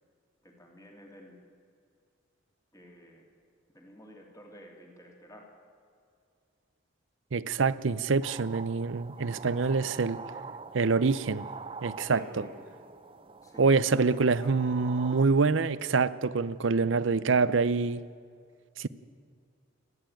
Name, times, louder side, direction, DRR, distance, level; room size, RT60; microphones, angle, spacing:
voice 1, 0.4-1.4 2.7-3.2 3.7-5.5 9.2-10.0 12.0-12.7 13.4-14.1 14.4-14.6, equal, 15° left, 3.0 m, -51 dB
voice 2, 7.3-10.2 10.7-11.5 11.8-12.2 13.6-18.0 18.8-18.9, right 4 dB, 75° right, 0.6 m, -25 dB
sound 1, 8.2-15.2, right 4 dB, 25° right, 0.5 m, -45 dB
29.0 x 11.0 x 9.1 m
head